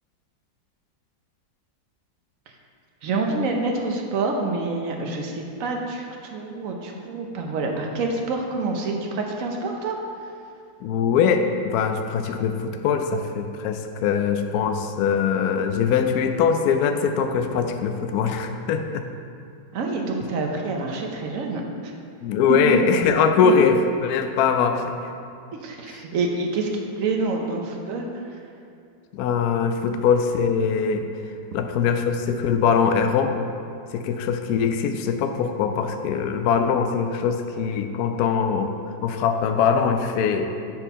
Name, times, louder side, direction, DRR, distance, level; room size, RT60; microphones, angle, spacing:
voice 1, 3.0-10.0 19.7-21.6 22.5-22.8 23.4-23.5 25.6-28.2, right 3 dB, 55° right, 1 dB, 1.0 m, -27 dB
voice 2, 10.8-19.0 22.2-24.9 29.1-31.1 31.5-33.3 33.9-38.7 39.0-40.5, left 6 dB, 75° left, 6 dB, 0.8 m, -22 dB
8.0 x 4.4 x 5.4 m, 2.4 s
omnidirectional pair, 2.1 m